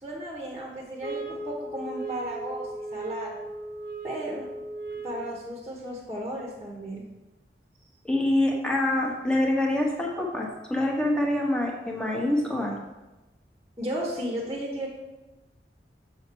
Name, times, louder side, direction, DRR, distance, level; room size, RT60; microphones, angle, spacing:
voice 1, 0.0-3.4 4.0-4.5 5.0-7.0 13.8-14.9, right 1 dB, 15° right, -2 dB, 1.1 m, -34 dB
sound 1, 1.0-5.4, right 2 dB, 55° right, 0.9 m, -37 dB
voice 2, 8.0-12.8, left 1 dB, 5° left, -1 dB, 1.1 m, -25 dB
6.5 x 6.4 x 4.6 m, 1.1 s
head